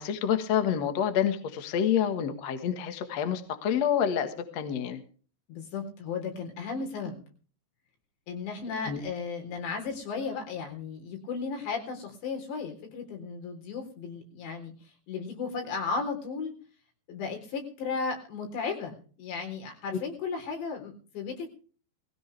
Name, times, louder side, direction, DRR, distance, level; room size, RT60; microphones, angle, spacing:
voice 1, 0.0-5.0 8.9-9.0, left 8 dB, 55° left, 8 dB, 1.9 m, -28 dB
voice 2, 5.5-7.2 8.3-14.7 15.1-16.6 17.1-21.5, left 5 dB, 90° left, 3 dB, 6.0 m, -35 dB
20.0 x 16.0 x 3.3 m, 0.41 s
omnidirectional pair, 4.9 m